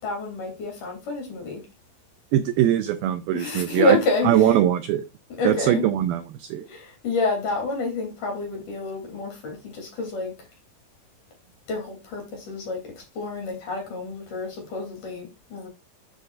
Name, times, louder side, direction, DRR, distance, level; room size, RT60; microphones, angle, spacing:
voice 1, 0.0-1.6 3.3-4.6 5.3-5.9 6.7-10.5 11.7-15.7, left 2 dB, 50° left, 4.2 m, -28 dB
voice 2, 2.3-4.0 4.3-5.0 5.5-6.6, right 12 dB, 80° right, 2.2 m, -21 dB
9.8 x 6.8 x 2.5 m
omnidirectional pair, 4.9 m